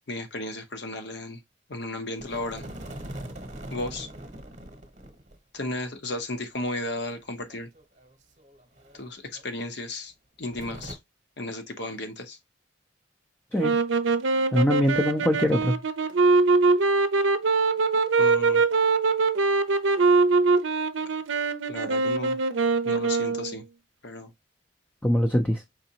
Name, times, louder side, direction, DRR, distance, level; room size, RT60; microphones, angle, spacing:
voice 1, 0.1-1.4 1.7-2.7 3.7-4.1 5.5-7.7 8.9-10.1 10.4-11.0 11.4-12.4 18.2-18.6 21.7-22.4 22.8-23.6 24.0-24.3, left 2 dB, 60° left, 0.9 m, -34 dB
sound 1, 2.2-5.4 5.7-5.8 7.1-9.1 9.3-9.4 10.5-11.0, right 1 dB, 35° right, 1.0 m, -42 dB
sound 2, 13.6-23.6, right 4 dB, 70° right, 0.6 m, -23 dB
voice 2, 14.5-15.8 25.0-25.6, equal, 10° left, 0.5 m, -23 dB
4.9 x 3.7 x 2.8 m
head